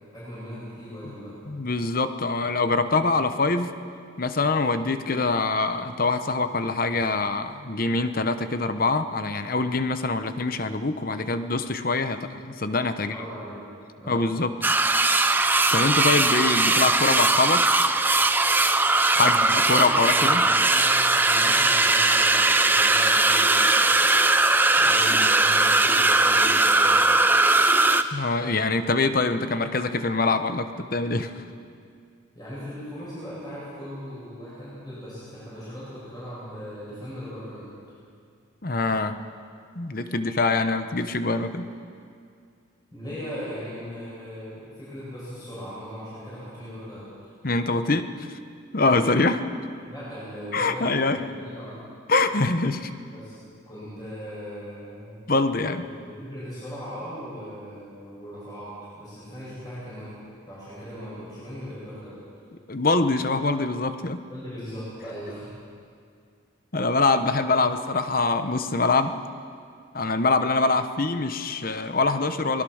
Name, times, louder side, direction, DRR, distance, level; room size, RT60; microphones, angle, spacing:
voice 1, 0.1-1.3 13.0-13.6 14.0-14.2 19.1-24.1 24.8-27.2 32.3-37.7 42.9-47.1 49.8-51.8 53.1-53.4 53.7-55.2 56.0-60.1 60.5-62.2 64.3-65.5, equal, 20° left, -10 dB, 8.0 m, -38 dB
voice 2, 1.5-3.8 4.2-13.1 14.1-14.5 15.2-15.5 15.7-17.7 19.2-20.5 28.1-31.3 38.6-39.2 39.7-41.7 47.4-48.3 48.7-49.5 50.5-51.2 52.1-52.9 55.3-55.9 62.7-64.2 66.7-69.2 69.9-72.6, left 3 dB, 45° left, 9 dB, 1.0 m, -24 dB
sound 1, 14.6-28.0, right 2 dB, 10° right, 0.6 m, -20 dB
24.5 x 20.5 x 6.5 m, 2.3 s
head